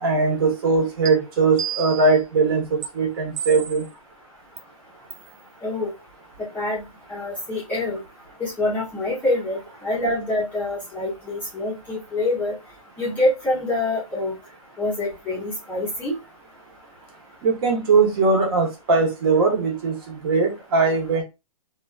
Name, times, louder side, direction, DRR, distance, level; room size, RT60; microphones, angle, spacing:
voice 1, 0.0-3.8 17.4-21.2, right 4 dB, 40° right, 1.0 m, -20 dB
sound 1, 1.1-1.2 1.6-2.2 2.8-2.9 3.4-3.9 4.6-4.7 5.1-5.3, right 8 dB, 60° right, 0.6 m, -31 dB
voice 2, 5.6-5.9 6.5-6.8 7.1-8.0 8.4-12.5 13.0-14.3 14.8-16.2, left 2 dB, 10° left, 0.7 m, -25 dB
2.4 x 2.3 x 2.4 m
hypercardioid pair, 150°, 18 cm